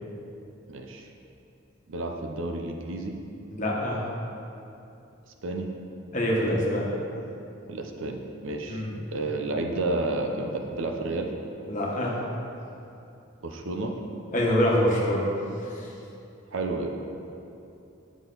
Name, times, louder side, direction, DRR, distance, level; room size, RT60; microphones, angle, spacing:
voice 1, 0.7-1.1 1.9-3.2 5.4-5.7 7.7-11.3 13.4-13.9 16.5-17.0, right 2 dB, 65° right, 3 dB, 0.6 m, -31 dB
voice 2, 3.5-4.0 6.1-6.9 8.7-8.9 11.7-12.1 14.3-15.3 15.7-15.9, equal, 35° left, -4 dB, 1.3 m, -25 dB
9.0 x 6.1 x 3.9 m, 2.8 s
head